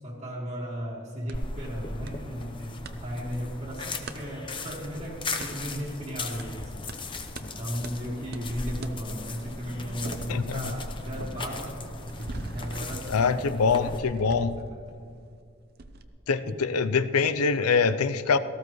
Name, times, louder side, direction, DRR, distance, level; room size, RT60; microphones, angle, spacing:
voice 1, 0.0-11.9 12.5-13.4 13.7-14.4 14.7-15.0 16.4-16.6, equal, 30° right, -7 dB, 1.6 m, -36 dB
sound 1, 1.3-14.0, left 2 dB, 20° left, 0.7 m, -37 dB
sound 2, 1.3-1.4 2.1-2.2 2.4-3.0 4.1-4.2 5.4-5.5 6.4-6.5 6.9-7.0 7.3-7.5 7.8-8.0 8.3-8.4 8.8-8.9 9.4-15.4 15.8-16.0, right 2 dB, 45° right, 0.7 m, -41 dB
voice 2, 10.3-10.6 13.1-14.6 16.3-18.4, left 5 dB, 90° left, 13 dB, 0.6 m, -24 dB
18.0 x 14.5 x 3.1 m, 2.3 s
head